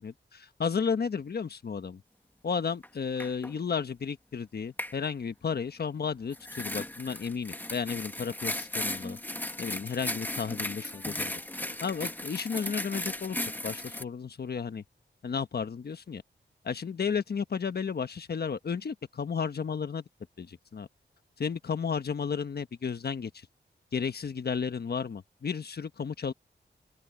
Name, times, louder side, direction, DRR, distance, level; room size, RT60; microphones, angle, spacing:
voice 1, 0.0-2.0 2.4-9.2 9.6-11.3 11.6-13.4 13.6-14.8 15.2-16.2 16.6-20.0 20.4-20.9 21.4-23.5 23.9-26.3, left 6 dB, 60° left, 1.3 m, -33 dB
sound 1, 2.8-2.9 3.2-3.5 4.8-5.0 6.3-14.0, left 1 dB, 10° left, 1.8 m, -36 dB
open air
wide cardioid pair, 100°, 19 cm